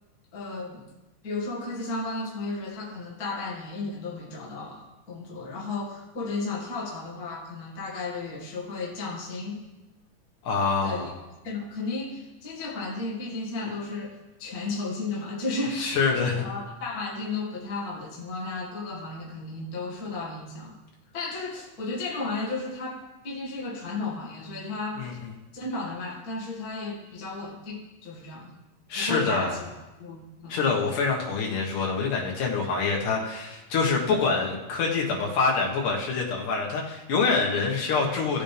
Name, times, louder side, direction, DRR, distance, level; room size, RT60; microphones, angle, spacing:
voice 1, 0.3-0.8 1.2-9.6 10.8-11.1 11.4-16.0 16.4-20.8 21.1-25.2 25.5-28.5 29.0-29.7 30.0-30.6, left 3 dB, 35° left, -5 dB, 1.8 m, -34 dB
voice 2, 10.4-11.1 15.7-16.4 25.0-25.1 28.9-29.6 30.5-38.4, left 4 dB, 65° left, -1 dB, 2.9 m, -26 dB
16.5 x 7.5 x 3.4 m, 1.0 s
omnidirectional pair, 4.2 m